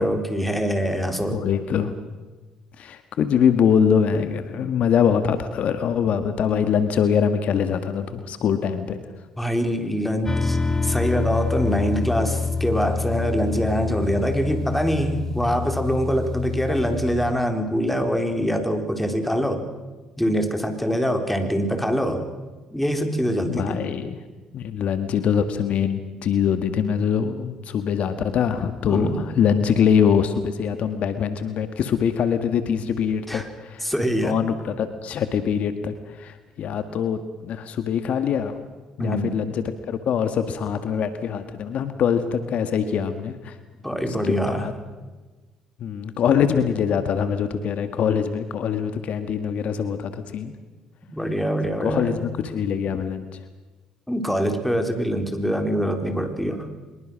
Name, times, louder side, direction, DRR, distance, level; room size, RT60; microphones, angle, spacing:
voice 1, 0.0-1.5 9.4-10.6 10.8-19.7 20.2-22.3 22.7-23.8 28.9-29.2 33.3-33.5 33.8-34.4 39.0-39.3 43.8-44.7 51.1-52.2 54.1-56.9, equal, 5° left, 5 dB, 4.2 m, -24 dB
voice 2, 1.3-1.9 2.8-9.0 23.5-24.2 24.5-33.9 34.2-38.5 39.0-43.6 44.3-44.7 45.8-50.5 51.8-53.2, left 7 dB, 65° left, 9 dB, 1.7 m, -23 dB
sound 1, 10.3-17.3, left 4 dB, 20° left, 1.9 m, -27 dB
24.5 x 22.0 x 6.4 m, 1.3 s
hypercardioid pair, 55°, 2 cm